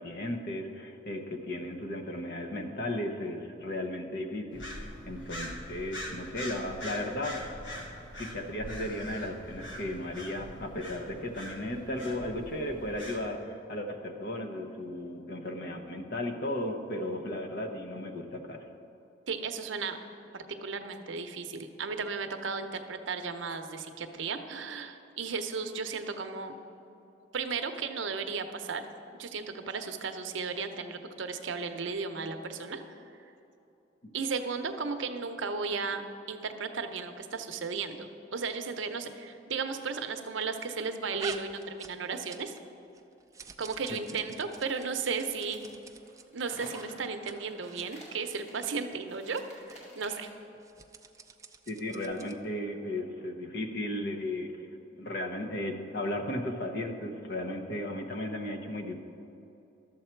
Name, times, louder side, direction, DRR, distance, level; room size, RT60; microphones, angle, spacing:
voice 1, 0.0-7.4 8.1-18.6 43.9-44.2 51.7-54.5 55.0-59.0, left 1 dB, 55° left, 4 dB, 0.9 m, -35 dB
sound 1, 4.5-13.2, equal, 75° left, 1.3 m, -43 dB
voice 2, 19.3-20.0 20.3-26.5 27.3-28.8 29.1-33.0 34.1-36.0 36.3-42.5 43.6-45.6 46.3-50.3, right 5 dB, 80° right, 7 dB, 0.7 m, -35 dB
sound 2, 41.2-42.7 42.9-46.2 46.7-46.9 47.1-47.3 47.6-47.9 48.3-48.7 49.3-49.4 49.7-49.8 50.6-52.4, right 4 dB, 15° right, 0.4 m, -47 dB
sound 3, 44.5-50.4, equal, 35° left, 2.3 m, -52 dB
12.5 x 7.3 x 4.5 m, 2.8 s
head